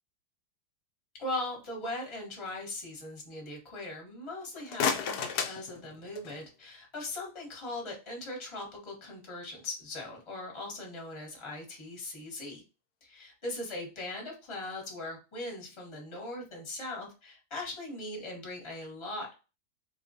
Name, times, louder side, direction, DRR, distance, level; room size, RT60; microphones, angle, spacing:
voice 1, 1.1-12.6 13.0-19.3, left 2 dB, 20° left, -1 dB, 1.0 m, -40 dB
sound 1, 4.4-6.5, left 6 dB, 75° left, 1.0 m, -33 dB
3.8 x 2.3 x 2.6 m, 0.31 s
omnidirectional pair, 1.8 m